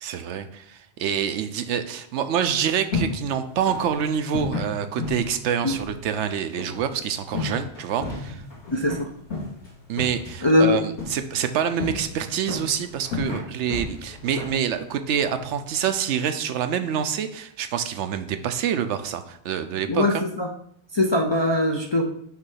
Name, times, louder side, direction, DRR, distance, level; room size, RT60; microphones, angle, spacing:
voice 1, 0.0-8.4 9.9-20.2, right 8 dB, 85° right, 9 dB, 0.9 m, -26 dB
sound 1, 2.5-15.9, left 3 dB, 75° left, 2.3 m, -34 dB
voice 2, 8.7-9.1 10.4-10.8 19.9-20.5 20.9-22.0, left 2 dB, 40° left, 0 dB, 0.4 m, -21 dB
5.9 x 3.2 x 5.6 m, 0.68 s
omnidirectional pair, 1.2 m